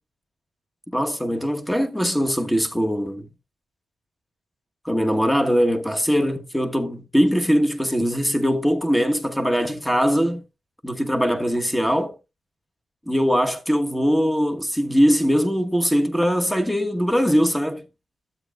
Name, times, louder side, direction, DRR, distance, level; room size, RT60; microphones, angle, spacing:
voice 1, 0.9-3.3 4.8-10.4 10.8-12.2 13.1-17.8, equal, 5° left, 1.2 m, -21 dB
12.5 x 8.1 x 2.3 m
cardioid pair, 95°, 0 cm